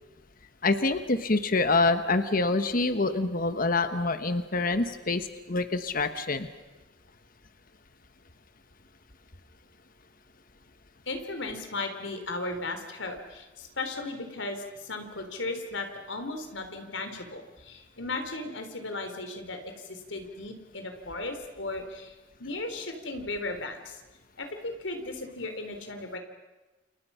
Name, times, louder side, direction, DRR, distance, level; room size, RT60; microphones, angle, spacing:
voice 1, 0.6-6.5, left 3 dB, 50° left, 10 dB, 1.2 m, -26 dB
voice 2, 11.1-22.1 22.4-24.0 24.4-26.2, left 2 dB, 80° left, 6 dB, 3.7 m, -36 dB
29.0 x 29.0 x 5.7 m, 1.1 s
head